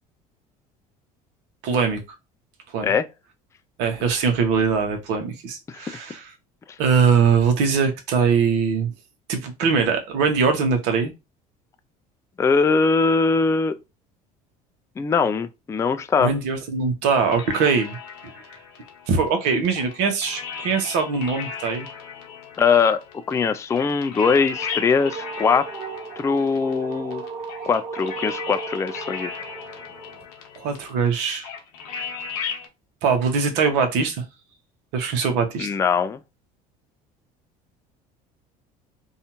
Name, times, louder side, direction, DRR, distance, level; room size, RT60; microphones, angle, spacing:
voice 1, 1.6-2.0 2.7-2.9 3.8-6.3 6.8-8.9 9.3-11.1 16.2-18.0 19.1-21.9 30.6-31.5 33.0-34.2 34.9-35.7, right 5 dB, 70° right, 0.9 m, -22 dB
voice 2, 12.4-13.7 15.0-16.3 22.6-23.0 23.3-25.7 26.2-27.2 27.6-29.3 35.6-36.2, left 5 dB, 15° left, 0.3 m, -21 dB
sound 1, 17.3-32.7, left 6 dB, 80° left, 0.8 m, -36 dB
sound 2, 24.1-30.3, right 5 dB, 30° right, 0.6 m, -36 dB
2.7 x 2.4 x 2.9 m
hypercardioid pair, 75°, 19 cm